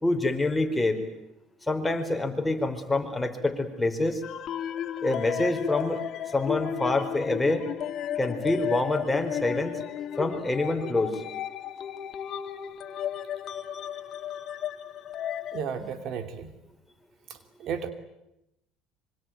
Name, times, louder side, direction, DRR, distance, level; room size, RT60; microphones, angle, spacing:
voice 1, 0.0-1.0 1.7-4.2 5.0-6.0 6.3-7.6 8.2-9.7 10.2-11.2, left 2 dB, 10° left, 4 dB, 4.5 m, -26 dB
sound 1, 4.2-15.6, left 10 dB, 50° left, 1.8 m, -34 dB
voice 2, 15.5-16.5 17.3-17.9, right 7 dB, 60° right, 9 dB, 2.8 m, -34 dB
25.5 x 25.0 x 9.3 m, 0.88 s
supercardioid pair, 95°, 0 cm